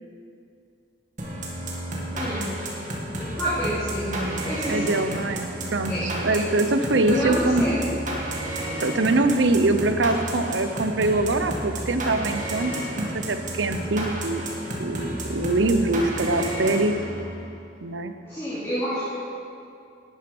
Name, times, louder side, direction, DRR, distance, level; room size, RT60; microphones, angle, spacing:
sound 1, 1.2-17.5, right 1 dB, 40° right, 2.0 m, -32 dB
voice 1, 2.1-2.5 3.1-5.1 5.9-6.4 7.0-7.9 16.2-16.5 18.2-19.1, equal, 15° left, -12 dB, 2.8 m, -29 dB
voice 2, 4.7-5.9 6.2-7.6 8.8-14.4 14.8-17.0 17.8-18.1, right 2 dB, 75° right, 9 dB, 0.7 m, -23 dB
12.0 x 9.8 x 5.4 m, 2.5 s
head